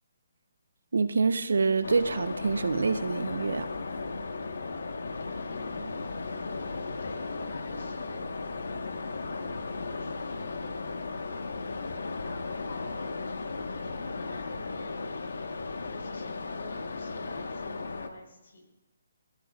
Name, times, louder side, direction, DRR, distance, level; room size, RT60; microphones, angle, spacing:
voice 1, 0.9-3.7, right 4 dB, 85° right, 0.8 m, -26 dB
sound 1, 1.8-18.1, left 3 dB, 85° left, 1.3 m, -36 dB
voice 2, 5.3-8.6 9.2-15.1 15.9-18.7, left 2 dB, 60° left, 4.5 m, -50 dB
22.0 x 15.0 x 2.4 m
hypercardioid pair, 175°, 0 cm